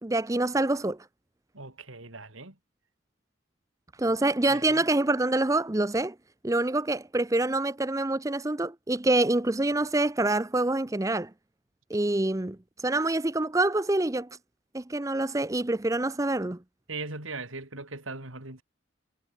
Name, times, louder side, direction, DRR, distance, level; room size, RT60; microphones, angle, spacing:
voice 1, 0.0-1.0 4.0-6.1 6.4-11.3 11.9-12.6 12.8-14.3 14.7-16.6, right 2 dB, 15° right, 0.6 m, -26 dB
voice 2, 1.5-2.6 4.5-4.8 16.9-18.6, right 3 dB, 80° right, 4.4 m, -39 dB
head